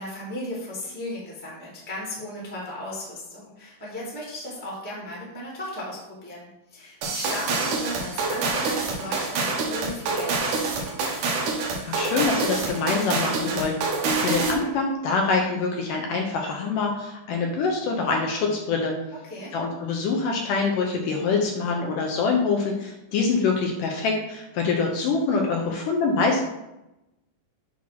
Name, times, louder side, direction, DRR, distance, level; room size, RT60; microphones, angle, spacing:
voice 1, 0.0-11.1 14.1-14.3 19.2-19.5, left 1 dB, 5° left, -5 dB, 1.3 m, -36 dB
sound 1, 7.0-14.7, right 3 dB, 65° right, 2.4 m, -26 dB
voice 2, 11.9-13.8 14.2-18.9 19.5-26.4, left 4 dB, 75° left, 1 dB, 2.3 m, -25 dB
8.6 x 3.0 x 5.7 m, 0.91 s
omnidirectional pair, 4.2 m